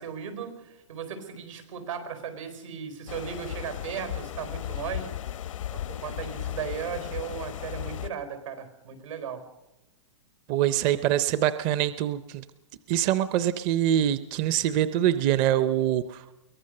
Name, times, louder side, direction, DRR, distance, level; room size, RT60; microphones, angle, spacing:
voice 1, 0.0-5.1 5.7-9.4, right 7 dB, 85° right, 9 dB, 4.7 m, -36 dB
sound 1, 3.1-8.1, left 11 dB, 85° left, 0.9 m, -35 dB
voice 2, 10.5-12.4 12.9-16.2, right 12 dB, 30° right, 14 dB, 0.6 m, -24 dB
22.5 x 18.5 x 6.6 m, 0.97 s
supercardioid pair, 160°, 16 cm